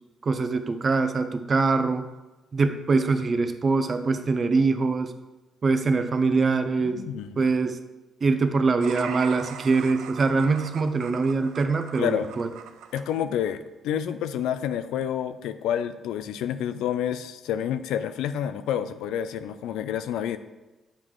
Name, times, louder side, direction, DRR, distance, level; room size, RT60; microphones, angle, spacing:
voice 1, 0.2-2.1 2.5-5.1 5.6-7.0 7.4-7.8 8.2-12.5, right 4 dB, 40° right, 9 dB, 0.6 m, -23 dB
voice 2, 6.8-7.4 12.0-12.3 12.9-20.4, left 9 dB, 90° left, 11 dB, 0.3 m, -29 dB
sound 1, 8.8-13.1, right 8 dB, 85° right, 0.4 m, -41 dB
7.3 x 4.8 x 3.7 m, 1.1 s
cardioid pair, 90°, 0 cm